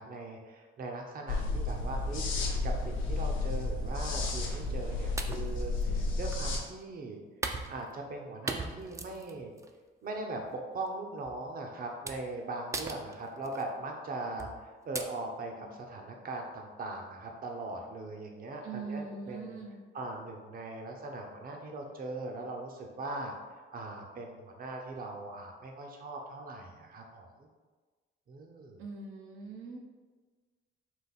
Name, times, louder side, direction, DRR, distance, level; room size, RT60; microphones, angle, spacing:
voice 1, 0.0-7.2 7.7-9.5 10.0-19.6 19.9-23.3 23.7-27.5 28.3-28.8, right 2 dB, 45° right, 2 dB, 0.7 m, -40 dB
sound 1, 1.3-6.6, left 3 dB, 90° left, 0.7 m, -32 dB
sound 2, 4.3-4.6 5.2-6.7 7.4-8.2 8.5-9.7 10.2-10.4 11.3-11.4 12.1-12.4 12.7-13.6 14.4-14.6 15.0-15.1, right 3 dB, 15° right, 0.4 m, -39 dB
voice 2, 18.6-19.8 28.8-29.8, right 4 dB, 85° right, 0 dB, 0.7 m, -41 dB
4.0 x 2.5 x 4.1 m, 1.4 s
cardioid pair, 90°, 20 cm